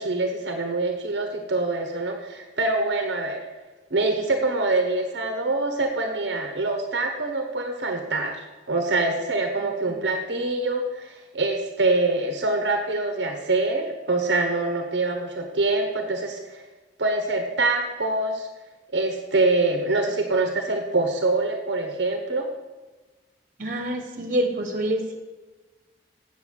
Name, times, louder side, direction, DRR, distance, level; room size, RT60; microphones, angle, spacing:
voice 1, 0.0-3.4 3.9-8.4 8.7-16.6 17.0-18.5 18.9-22.5, right 2 dB, 75° right, 4 dB, 1.1 m, -25 dB
voice 2, 23.6-25.2, right 1 dB, 45° right, 3 dB, 1.6 m, -26 dB
7.9 x 7.6 x 6.4 m, 1.2 s
head